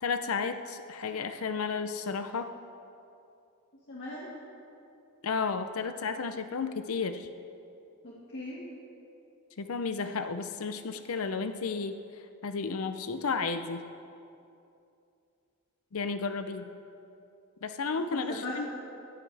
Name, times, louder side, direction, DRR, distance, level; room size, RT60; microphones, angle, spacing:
voice 1, 0.0-2.5 5.2-7.3 9.6-12.0 12.4-13.8 15.9-16.7 17.6-18.7, left 4 dB, 85° left, 9 dB, 0.6 m, -32 dB
voice 2, 3.9-4.3 8.0-8.6 18.0-18.7, left 1 dB, 55° left, -6 dB, 1.9 m, -39 dB
15.5 x 14.0 x 3.4 m, 2.6 s
head